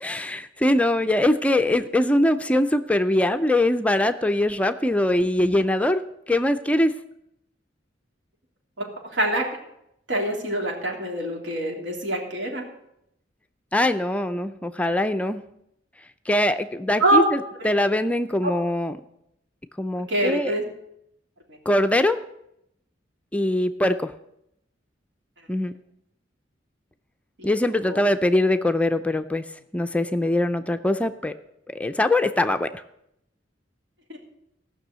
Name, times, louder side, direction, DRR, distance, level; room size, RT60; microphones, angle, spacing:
voice 1, 0.0-6.9 13.7-15.4 16.3-17.4 17.6-19.0 19.8-20.5 21.7-22.2 23.3-24.1 25.5-25.7 27.4-29.4 29.7-31.3 31.7-32.8, left 1 dB, 5° left, 9 dB, 0.4 m, -22 dB
voice 2, 9.1-9.4 10.1-12.6 17.0-17.3 17.6-17.7 20.1-20.6 27.4-27.5 27.8-28.0 34.1-34.2, right 1 dB, 80° right, 0 dB, 3.0 m, -24 dB
15.5 x 6.2 x 8.0 m, 0.80 s
head